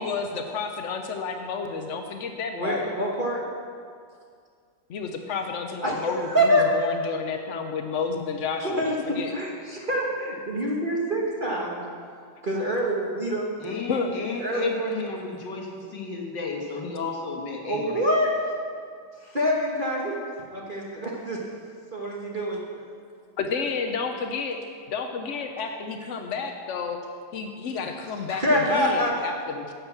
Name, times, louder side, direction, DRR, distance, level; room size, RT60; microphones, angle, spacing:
voice 1, 0.0-2.9 4.9-9.3 11.5-11.6 13.9-14.1 23.4-24.6 24.9-27.0 27.3-29.7, left 5 dB, 85° left, 5 dB, 0.6 m, -31 dB
voice 2, 2.5-3.4 5.8-6.7 8.8-11.8 12.4-13.4 14.4-14.7 17.6-18.5 19.2-21.4 21.9-22.6 28.3-29.1, equal, 30° right, -3 dB, 1.1 m, -26 dB
voice 3, 13.6-18.1, left 3 dB, 60° left, 0 dB, 2.1 m, -32 dB
11.0 x 7.2 x 7.1 m, 2.1 s
omnidirectional pair, 2.2 m